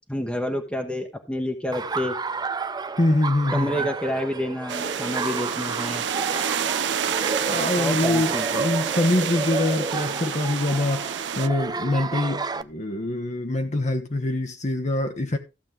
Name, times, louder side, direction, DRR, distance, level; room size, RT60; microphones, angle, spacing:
voice 1, 0.1-2.2 3.5-6.1 7.8-8.7, left 1 dB, 5° left, 1.1 m, -29 dB
Laughter, 1.7-12.6, right 4 dB, 25° right, 0.5 m, -31 dB
voice 2, 3.0-3.7 7.5-11.1 11.4-15.4, left 2 dB, 40° left, 1.1 m, -24 dB
sound 1, 4.7-11.5, right 8 dB, 70° right, 0.6 m, -28 dB
14.5 x 7.4 x 3.8 m
head